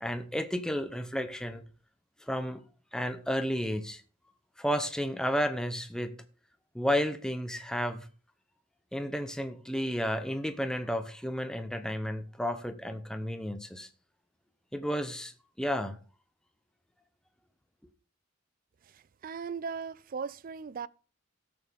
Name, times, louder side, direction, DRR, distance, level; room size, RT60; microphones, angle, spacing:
voice 1, 0.0-1.6 2.3-2.6 2.9-4.0 4.6-6.2 6.7-8.1 8.9-13.9 14.7-15.3 15.6-16.0, equal, 5° left, 0.8 m, -32 dB
voice 2, 18.9-20.9, right 5 dB, 45° right, 0.4 m, -38 dB
17.0 x 6.9 x 3.6 m
head